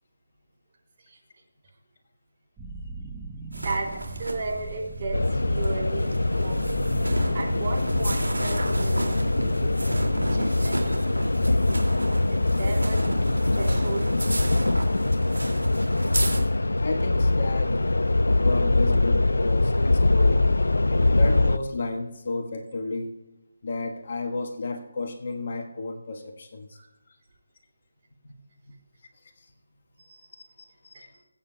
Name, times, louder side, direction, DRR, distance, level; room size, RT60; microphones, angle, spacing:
sound 1, 2.6-16.5, right 4 dB, 10° right, 0.8 m, -41 dB
voice 1, 3.5-6.9 7.3-11.6 12.3-13.0 13.5-14.1 26.7-26.9 30.1-30.4 30.9-31.0, right 3 dB, 35° right, -3 dB, 3.6 m, -35 dB
sound 2, 3.5-16.4, right 1 dB, 90° right, 2.3 m, -33 dB
sound 3, 5.1-21.6, left 2 dB, 80° left, 0.4 m, -23 dB
voice 2, 16.8-17.8 18.4-20.5 20.9-23.1 23.6-26.8 28.2-28.3 29.4-29.5 30.8-31.1, left 2 dB, 50° left, 3 dB, 1.2 m, -32 dB
21.5 x 8.7 x 2.2 m, 0.97 s
figure-of-eight pair, 155°, 0 cm